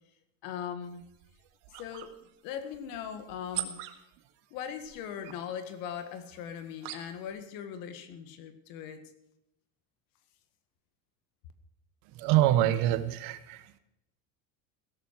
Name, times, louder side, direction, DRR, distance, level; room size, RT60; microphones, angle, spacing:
voice 1, 0.4-1.0 1.8-2.1 2.4-3.8 4.5-9.1, left 8 dB, 60° left, 10 dB, 1.9 m, -39 dB
sound 1, 0.8-7.4, right 14 dB, 80° right, 1.9 m, -45 dB
voice 2, 12.1-13.8, right 13 dB, 60° right, 12 dB, 1.3 m, -26 dB
16.5 x 13.5 x 4.8 m, 0.81 s
cardioid pair, 175°, 39 cm